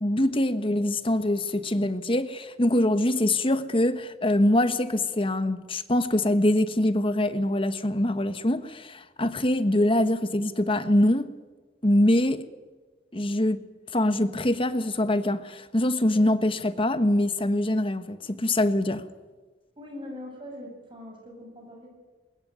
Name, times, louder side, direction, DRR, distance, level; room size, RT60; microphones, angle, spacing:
voice 1, 0.0-11.3 11.8-12.5 13.1-13.6 13.9-19.0, left 1 dB, 30° left, 1.2 m, -24 dB
voice 2, 19.8-21.9, left 1 dB, 30° right, 7.9 m, -41 dB
22.5 x 20.5 x 9.4 m
head